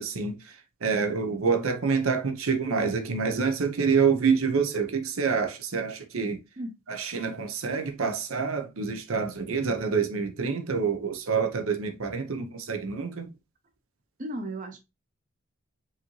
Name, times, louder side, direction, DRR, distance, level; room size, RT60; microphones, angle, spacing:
voice 1, 0.0-6.4 6.9-13.3, right 5 dB, 70° right, 0.7 m, -27 dB
voice 2, 14.2-14.8, right 1 dB, 35° right, 0.6 m, -34 dB
4.8 x 2.8 x 3.0 m
head